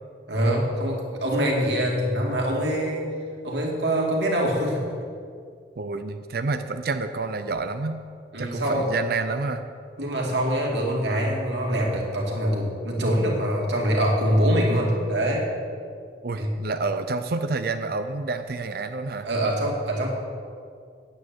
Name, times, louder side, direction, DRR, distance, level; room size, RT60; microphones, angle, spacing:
voice 1, 0.3-3.1 3.4-4.8 8.3-8.9 10.0-15.5 16.4-16.5 19.2-20.1, equal, 70° right, -1 dB, 2.5 m, -24 dB
voice 2, 5.8-8.0 8.4-9.6 16.2-19.3, right 3 dB, 55° right, 9 dB, 0.6 m, -28 dB
9.5 x 9.2 x 7.9 m, 2.3 s
head